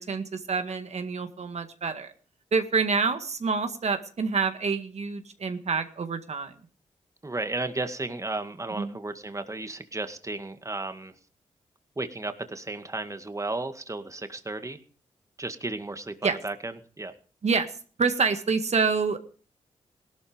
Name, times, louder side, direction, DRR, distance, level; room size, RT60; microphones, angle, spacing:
voice 1, 0.0-2.1 2.5-6.5 8.8-9.0 16.2-16.4 17.4-17.7 18.0-19.2, right 5 dB, 60° right, 8 dB, 1.9 m, -27 dB
voice 2, 7.2-11.1 12.0-14.8 15.4-16.1 16.4-17.1, right 2 dB, 25° right, 9 dB, 2.1 m, -34 dB
17.5 x 12.5 x 5.2 m, 0.42 s
supercardioid pair, 45°, 13 cm